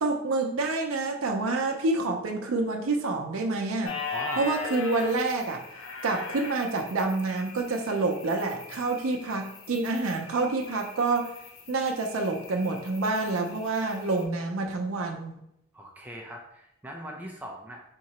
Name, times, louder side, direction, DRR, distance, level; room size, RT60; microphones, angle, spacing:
voice 1, 0.0-4.0 4.4-5.6 6.0-11.3 11.7-15.4, right 3 dB, 85° right, 3 dB, 0.5 m, -28 dB
sound 1, 3.8-14.2, left 4 dB, 75° left, 0.7 m, -40 dB
voice 2, 4.1-4.6 15.7-17.8, right 1 dB, 10° right, 0 dB, 0.4 m, -40 dB
3.7 x 2.8 x 4.2 m, 0.80 s
head